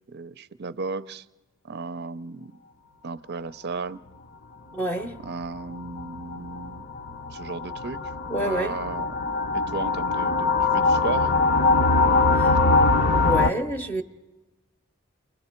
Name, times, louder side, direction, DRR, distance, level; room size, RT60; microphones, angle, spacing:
voice 1, 0.1-1.3 1.6-2.5 3.0-4.0 5.2-6.9 7.3-9.1 9.5-11.4, right 4 dB, 50° right, 0.6 m, -35 dB
voice 2, 4.7-5.2 8.3-8.8 12.3-12.6 13.1-14.0, right 1 dB, 10° left, 0.8 m, -28 dB
sound 1, 5.0-13.5, left 3 dB, 50° left, 0.7 m, -22 dB
30.0 x 21.0 x 4.4 m
head